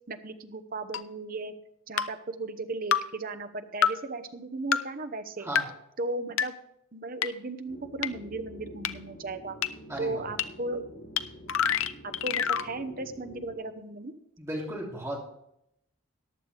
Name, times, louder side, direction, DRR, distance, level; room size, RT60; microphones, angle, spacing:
voice 1, 0.1-1.5 1.9-5.5 6.0-6.6 6.9-9.6 10.0-10.9 12.2-14.1, right 2 dB, 40° right, 8 dB, 0.9 m, -36 dB
sound 1, 0.9-1.0 2.0-2.1 2.9-3.0 3.8-3.9 4.7-4.8 5.5-5.6 6.4-6.5 7.2-7.3 8.0-8.1 8.8-8.9 9.6-9.7 10.4-10.5 11.2-11.3 11.5-12.7, left 8 dB, 65° left, 0.6 m, -25 dB
sound 2, 7.7-13.6, equal, 50° left, 4.8 m, -47 dB
voice 2, 9.9-10.2 14.4-15.2, right 1 dB, 15° right, -3 dB, 2.9 m, -35 dB
14.5 x 10.5 x 3.4 m, 0.77 s
head